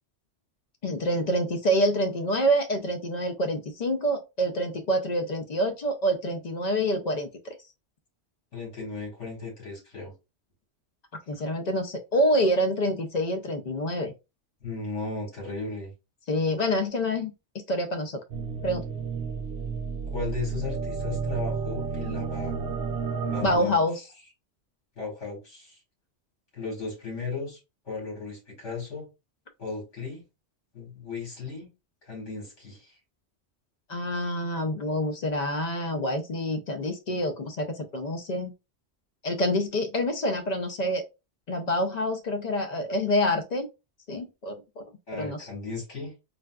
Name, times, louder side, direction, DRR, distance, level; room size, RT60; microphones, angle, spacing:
voice 1, 0.8-7.5 11.3-14.1 16.3-17.3 17.7-18.2 18.6-18.8 23.4-24.0 33.9-38.5 39.2-41.0 41.5-43.7 44.1-44.8 45.1-45.5, equal, 55° left, 0.5 m, -27 dB
voice 2, 8.5-10.1 14.6-15.9 20.1-22.6 23.2-23.8 25.0-25.8 26.5-27.6 27.8-29.1 29.6-30.2 30.7-31.7 32.0-32.9 45.1-46.1, left 4 dB, 80° left, 2.1 m, -36 dB
sound 1, 18.3-23.6, right 5 dB, 65° right, 0.8 m, -31 dB
4.0 x 2.3 x 2.2 m
omnidirectional pair, 1.2 m